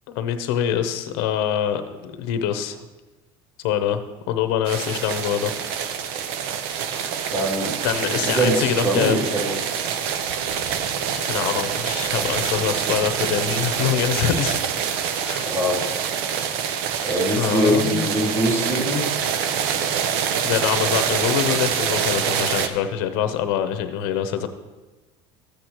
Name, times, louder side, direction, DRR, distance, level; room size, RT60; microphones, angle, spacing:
voice 1, 0.1-2.8 3.6-4.0 4.3-6.1 7.8-9.2 11.1-14.6 15.2-15.6 17.4-18.1 20.4-24.5, left 9 dB, 80° left, 9 dB, 0.8 m, -25 dB
sound 1, 4.7-22.7, right 8 dB, 75° right, 0.7 m, -25 dB
voice 2, 7.3-9.5 15.4-15.8 17.0-19.1, right 1 dB, 25° right, -4 dB, 2.9 m, -23 dB
13.5 x 8.1 x 3.0 m, 1.1 s
cardioid pair, 150°, 13 cm